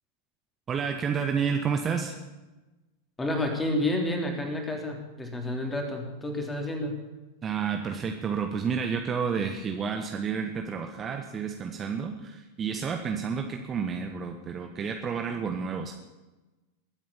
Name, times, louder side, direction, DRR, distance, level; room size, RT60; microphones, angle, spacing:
voice 1, 0.7-2.2 7.4-15.9, right 6 dB, 25° right, 4 dB, 1.3 m, -30 dB
voice 2, 3.2-7.0, left 1 dB, 10° left, 2 dB, 3.5 m, -30 dB
21.5 x 9.1 x 7.2 m, 1.1 s
figure-of-eight pair, 90°, 0 cm